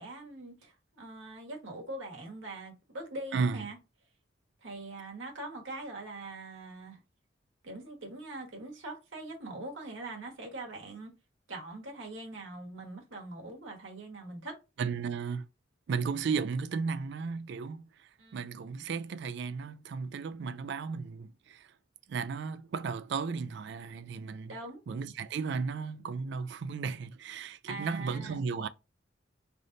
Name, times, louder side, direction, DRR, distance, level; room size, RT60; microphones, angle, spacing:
voice 1, 0.0-3.8 4.6-7.0 7.6-11.1 11.5-14.6 18.2-18.5 24.5-24.8 27.7-28.4, right 2 dB, 90° right, 1.4 m, -42 dB
voice 2, 3.3-3.7 14.8-15.4 15.9-17.8 18.3-21.7 22.1-24.5 24.9-28.7, right 5 dB, 60° right, 0.3 m, -34 dB
3.4 x 2.6 x 3.9 m
head